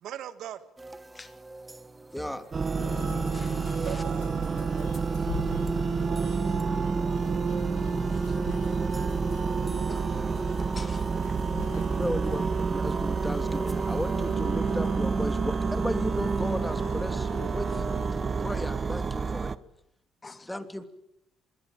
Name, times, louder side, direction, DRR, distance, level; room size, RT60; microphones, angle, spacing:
voice 1, 0.0-0.6 3.8-6.0, right 11 dB, 70° right, 13 dB, 1.6 m, -42 dB
sound 1, 0.8-14.4, right 2 dB, 15° right, 1.7 m, -48 dB
voice 2, 2.1-2.4 12.0-17.8 18.1-19.5 20.5-20.9, left 1 dB, 5° left, 9 dB, 2.8 m, -35 dB
sound 2, 2.5-19.6, right 5 dB, 35° right, 1.1 m, -28 dB
sound 3, 2.8-18.1, left 11 dB, 90° left, 2.0 m, -45 dB
voice 3, 3.3-4.0 8.1-8.2 9.9-10.1 10.7-11.4 20.2-20.5, left 3 dB, 25° left, 11 dB, 2.3 m, -47 dB
25.5 x 22.0 x 8.8 m, 0.77 s
supercardioid pair, 80°, 0 cm